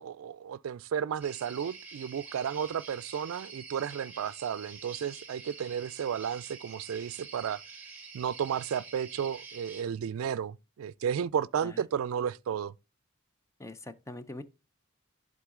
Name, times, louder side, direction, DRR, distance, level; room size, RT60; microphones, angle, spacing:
voice 1, 0.0-7.6 8.1-12.7, right 8 dB, 85° right, 0.3 m, -33 dB
sound 1, 1.2-9.8, right 4 dB, 10° right, 1.8 m, -47 dB
voice 2, 13.6-14.4, left 2 dB, 15° left, 0.5 m, -43 dB
11.5 x 3.9 x 3.6 m
head